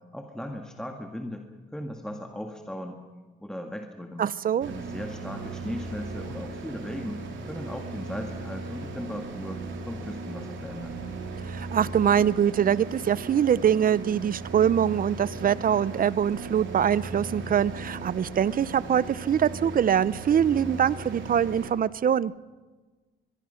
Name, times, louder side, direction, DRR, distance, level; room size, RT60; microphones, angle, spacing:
voice 1, 0.1-3.0 3.4-4.2 4.7-7.2 7.5-11.0, equal, 5° left, 3 dB, 1.9 m, -37 dB
voice 2, 4.2-4.7 11.4-22.3, right 9 dB, 45° right, 19 dB, 0.6 m, -23 dB
sound 1, 4.6-21.7, right 3 dB, 75° right, 3.4 m, -37 dB
25.0 x 22.0 x 5.7 m, 1.3 s
cardioid pair, 90°, 20 cm